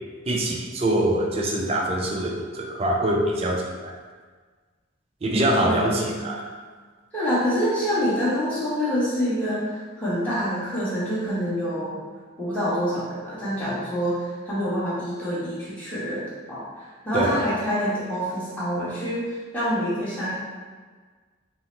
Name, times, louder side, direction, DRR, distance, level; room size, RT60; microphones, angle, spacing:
voice 1, 0.3-3.9 5.2-6.4 17.1-17.4, right 1 dB, 30° right, 0 dB, 0.4 m, -24 dB
voice 2, 5.6-6.3 7.1-11.9 12.4-19.2 19.5-20.3, equal, 5° left, -11 dB, 1.2 m, -26 dB
3.9 x 2.0 x 4.3 m, 1.5 s
head